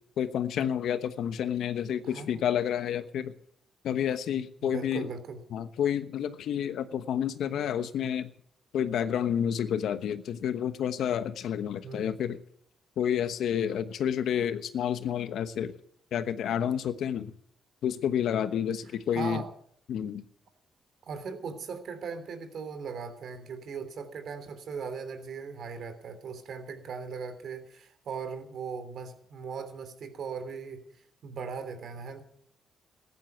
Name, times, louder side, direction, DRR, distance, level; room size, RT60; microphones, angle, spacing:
voice 1, 0.2-3.3 3.8-5.1 5.5-8.3 8.7-12.4 13.0-15.7 16.1-17.3 17.8-19.4 19.9-20.2, left 9 dB, 70° left, 11 dB, 1.1 m, -29 dB
voice 2, 2.0-2.5 4.6-5.4 11.8-12.1 19.1-19.5 21.1-32.2, right 5 dB, 60° right, 9 dB, 3.2 m, -39 dB
15.0 x 11.0 x 7.9 m, 0.67 s
cardioid pair, 90°, 0 cm